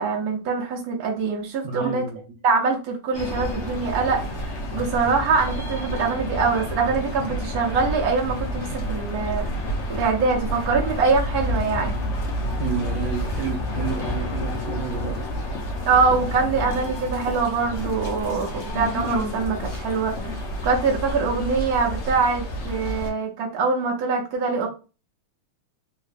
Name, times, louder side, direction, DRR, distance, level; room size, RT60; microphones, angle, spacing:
voice 1, 0.0-2.0 2.4-4.2 4.7-9.4 9.9-11.9 15.9-20.4 20.6-24.7, right 4 dB, 60° right, -1 dB, 1.0 m, -23 dB
voice 2, 1.6-2.4 12.6-15.2, right 5 dB, 90° right, 0 dB, 0.8 m, -30 dB
sound 1, 3.1-23.1, equal, 85° left, 0.6 m, -29 dB
3.6 x 3.1 x 2.4 m, 0.32 s
omnidirectional pair, 2.4 m